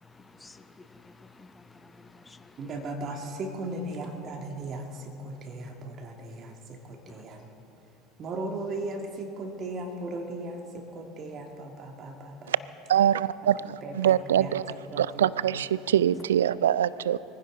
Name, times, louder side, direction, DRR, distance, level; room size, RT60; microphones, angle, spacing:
voice 1, 0.0-2.6 7.1-7.2, left 3 dB, 15° left, 11 dB, 0.7 m, -52 dB
voice 2, 2.6-7.6 8.2-12.5 13.4-13.5 13.8-15.3, right 2 dB, 40° right, 2 dB, 1.9 m, -37 dB
voice 3, 12.9-14.7 15.0-17.2, right 10 dB, 75° right, 19 dB, 0.3 m, -24 dB
23.5 x 15.5 x 3.8 m, 2.8 s
figure-of-eight pair, 70°, 0 cm